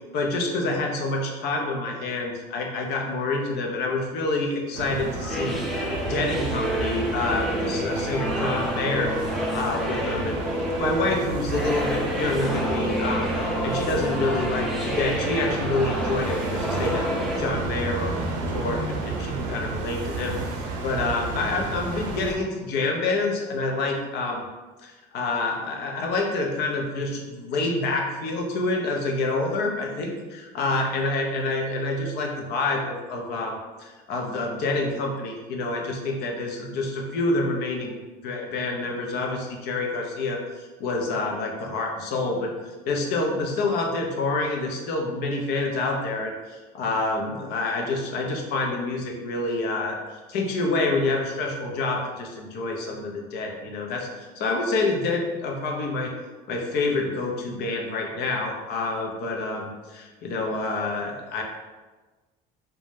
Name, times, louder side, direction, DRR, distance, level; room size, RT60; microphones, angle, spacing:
voice 1, 0.1-5.6 6.1-9.1 9.5-10.4 10.8-13.3 13.6-17.1 17.3-18.2 18.5-20.4 20.8-24.4 24.8-37.9 38.2-42.5 42.9-50.0 50.3-54.1 54.4-56.1 56.5-61.4, left 2 dB, 65° left, 1 dB, 0.5 m, -27 dB
sound 1, 4.7-22.4, right 3 dB, 90° right, 0.5 m, -31 dB
sound 2, 5.3-17.4, equal, ahead, 0.4 m, -29 dB
2.5 x 2.2 x 3.2 m, 1.2 s
cardioid pair, 125°, 18 cm